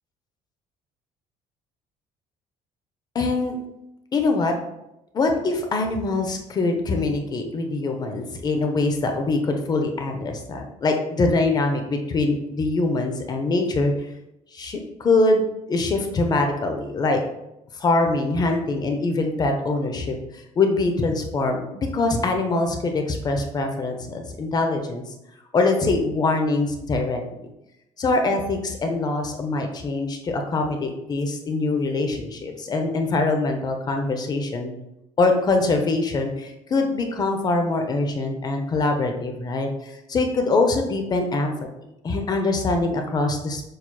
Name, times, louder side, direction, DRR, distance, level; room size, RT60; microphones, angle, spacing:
voice 1, 3.1-3.6 4.1-4.6 5.1-13.9 14.5-17.2 17.8-20.2 20.6-25.0 25.5-27.4 28.0-34.7 35.2-41.5 42.0-43.6, left 3 dB, 30° left, 4 dB, 0.5 m, -23 dB
6.4 x 2.9 x 2.2 m, 0.88 s
cardioid pair, 150°, 14 cm